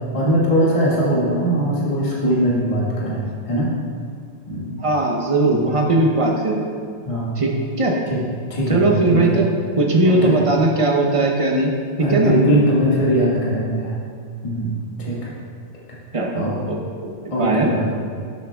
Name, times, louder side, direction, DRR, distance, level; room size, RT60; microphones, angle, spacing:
voice 1, 0.1-3.7 4.5-4.8 5.4-5.7 7.0-7.4 8.1-8.2 8.5-9.4 10.0-10.4 12.0-13.9 14.4-14.7 15.0-15.3 16.3-16.5 17.3-18.0, equal, 20° left, -6 dB, 1.7 m, -20 dB
voice 2, 4.8-6.6 7.4-8.0 8.7-9.4 9.8-11.7 12.0-12.3 16.1-17.1 17.4-17.7, right 2 dB, 40° right, 0 dB, 0.5 m, -19 dB
11.0 x 7.5 x 3.5 m, 2.2 s
omnidirectional pair, 2.0 m